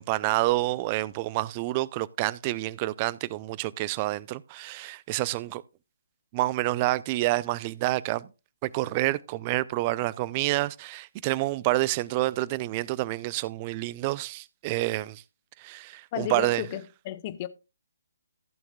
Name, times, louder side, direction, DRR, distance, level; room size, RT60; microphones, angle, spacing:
voice 1, 0.0-5.6 6.3-8.3 8.6-15.2 15.6-16.6, right 18 dB, 25° right, 0.4 m, -28 dB
voice 2, 16.1-17.5, left 13 dB, 30° left, 0.7 m, -33 dB
15.0 x 9.0 x 2.3 m
figure-of-eight pair, 135°, 0 cm